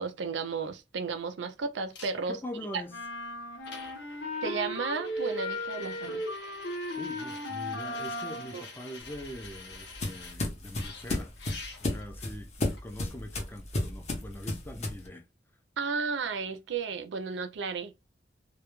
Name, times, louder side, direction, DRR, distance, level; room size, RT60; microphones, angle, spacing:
voice 1, 0.0-2.4 2.7-2.8 4.4-6.2 8.5-8.6 15.8-17.9, right 5 dB, 85° right, 0.4 m, -33 dB
sound 1, 1.9-2.1 3.1-3.2 3.6-10.4 10.8-12.0 12.8-12.9, left 4 dB, 70° left, 0.9 m, -47 dB
voice 2, 2.3-3.0 7.0-11.3 11.8-15.3, left 1 dB, 10° left, 0.4 m, -43 dB
sound 2, 2.9-8.6, left 1 dB, 90° left, 1.1 m, -36 dB
sound 3, 9.0-15.1, left 2 dB, 40° left, 0.7 m, -34 dB
2.2 x 2.1 x 2.9 m
head